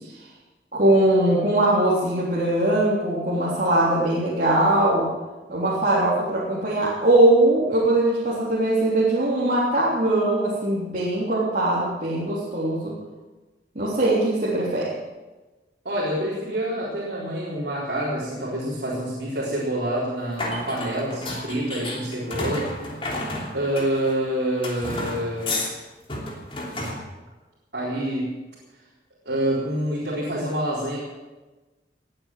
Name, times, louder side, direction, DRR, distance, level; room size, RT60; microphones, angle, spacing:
voice 1, 0.7-5.1 5.5-13.0 13.8-14.9, right 1 dB, 45° right, -7 dB, 3.5 m, -21 dB
voice 2, 15.8-22.9 23.5-25.6 27.7-28.3 29.2-31.0, right 1 dB, 65° right, -6 dB, 4.2 m, -27 dB
sound 1, 20.4-24.2 24.6-25.7 26.1-27.0, left 2 dB, 30° left, 3.2 m, -31 dB
19.5 x 8.9 x 7.6 m, 1.2 s
head